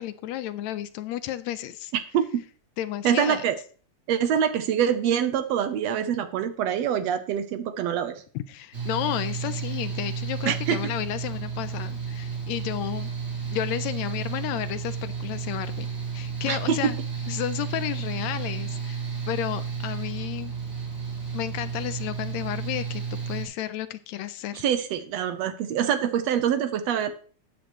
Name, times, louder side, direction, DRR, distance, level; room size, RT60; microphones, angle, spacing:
voice 1, 0.0-1.9 2.8-3.5 8.3-13.1 13.5-15.9 16.1-17.0 17.3-20.5 21.3-24.7, left 12 dB, 80° left, 12 dB, 1.8 m, -32 dB
voice 2, 3.0-3.6 4.1-8.2 10.5-10.8 16.5-16.9 24.6-27.1, right 9 dB, 75° right, 10 dB, 1.7 m, -25 dB
Mechanical fan, 8.7-23.5, right 6 dB, 25° right, 3.4 m, -32 dB
13.0 x 8.9 x 3.1 m, 0.42 s
omnidirectional pair, 3.3 m